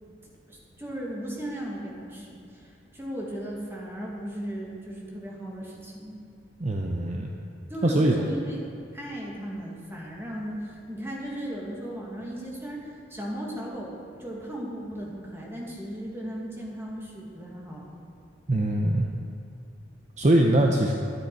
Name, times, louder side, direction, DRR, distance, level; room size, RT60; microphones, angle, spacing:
voice 1, 0.5-6.2 7.7-18.0, equal, 15° right, -3 dB, 1.9 m, -36 dB
voice 2, 6.6-7.3 7.8-8.2 18.5-19.1 20.2-20.9, right 1 dB, 40° right, 1 dB, 0.7 m, -22 dB
11.5 x 10.0 x 4.6 m, 2.5 s
head